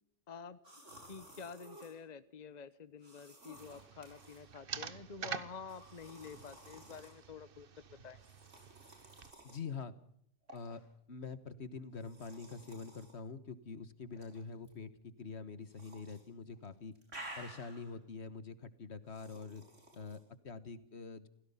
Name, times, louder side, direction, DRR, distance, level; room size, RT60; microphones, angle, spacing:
voice 1, 0.3-0.6 1.0-7.7 8.0-8.2, left 5 dB, 40° left, 14 dB, 1.0 m, -49 dB
sound 1, 0.6-2.0 3.0-4.4 5.7-7.1 8.2-9.6 10.5-10.8 12.0-13.2 14.1-14.7 15.7-16.2 16.5-18.0 19.1-20.2, right 1 dB, 85° right, 6.4 m, -54 dB
sound 2, 3.5-9.3, right 7 dB, 50° right, 1.2 m, -48 dB
voice 2, 9.4-9.9 10.5-10.8 11.1-16.9 17.4-19.6 19.9-21.3, left 4 dB, 65° left, 14 dB, 1.6 m, -45 dB
28.5 x 17.0 x 5.6 m, 0.66 s
omnidirectional pair, 1.2 m